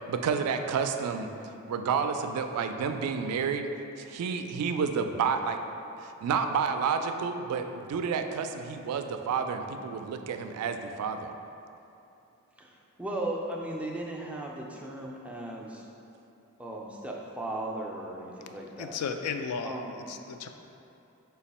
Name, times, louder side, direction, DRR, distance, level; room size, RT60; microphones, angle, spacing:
voice 1, 0.1-1.3 1.7-3.7 4.0-5.6 6.0-11.3, right 6 dB, 85° right, 11 dB, 0.3 m, -30 dB
voice 2, 12.6-15.9 16.6-19.0 19.6-20.0, right 1 dB, 5° right, -2 dB, 0.3 m, -37 dB
voice 3, 18.8-19.8 20.1-20.5, left 6 dB, 80° left, 7 dB, 0.3 m, -34 dB
5.1 x 2.3 x 4.1 m, 2.8 s
head